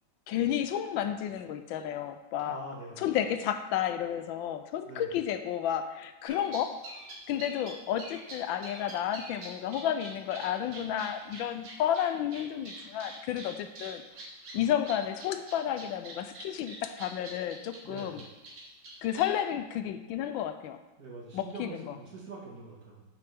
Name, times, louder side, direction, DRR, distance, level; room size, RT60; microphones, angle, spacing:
voice 1, 0.3-2.6 3.0-6.7 7.3-14.0 14.5-18.2 19.0-20.8 21.3-22.0, left 10 dB, 85° left, 9 dB, 1.3 m, -31 dB
voice 2, 2.4-3.0 4.8-5.1 17.8-18.2 21.0-23.0, right 2 dB, 50° right, -3 dB, 2.1 m, -44 dB
sound 1, 6.2-19.3, right 2 dB, 75° right, 2.2 m, -45 dB
9.1 x 6.1 x 3.5 m, 1.1 s
omnidirectional pair, 2.1 m